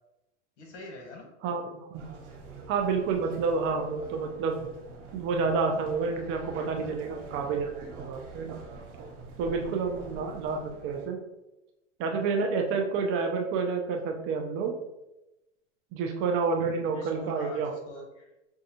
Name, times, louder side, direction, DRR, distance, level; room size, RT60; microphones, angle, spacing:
voice 1, 0.6-1.3 16.6-18.3, left 1 dB, 70° left, 1 dB, 1.3 m, -44 dB
sound 1, 1.9-11.1, right 4 dB, 70° right, 1.3 m, -45 dB
voice 2, 2.7-4.6 5.1-8.6 9.4-11.2 12.0-14.8 15.9-17.7, right 4 dB, 35° right, 3 dB, 0.5 m, -29 dB
5.3 x 2.3 x 2.8 m, 0.94 s
hypercardioid pair, 120°, 37 cm